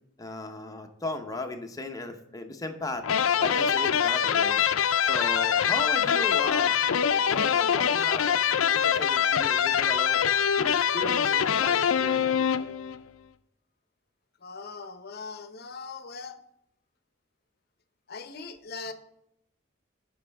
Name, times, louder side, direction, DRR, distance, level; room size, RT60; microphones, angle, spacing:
voice 1, 0.2-3.1 3.4-4.6 5.1-6.8 7.1-10.2 10.6-12.5, left 2 dB, 15° left, 5 dB, 0.9 m, -36 dB
sound 1, 3.0-13.0, left 8 dB, 85° left, 0.5 m, -24 dB
voice 2, 14.4-16.4 18.1-18.9, left 4 dB, 50° left, 11 dB, 0.8 m, -40 dB
14.5 x 5.4 x 3.5 m, 0.80 s
head